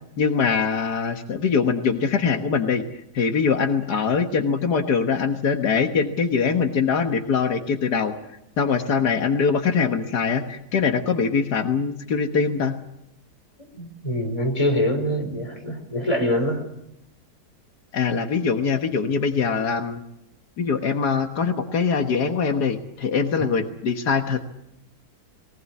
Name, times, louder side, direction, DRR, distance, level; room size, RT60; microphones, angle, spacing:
voice 1, 0.2-2.8 3.1-8.1 8.6-12.7 17.9-20.0 20.6-24.4, left 5 dB, 90° left, 6 dB, 2.0 m, -23 dB
voice 2, 13.7-16.6 23.4-23.5, left 1 dB, 20° left, 3 dB, 4.4 m, -24 dB
21.0 x 18.5 x 8.4 m, 0.81 s
omnidirectional pair, 1.7 m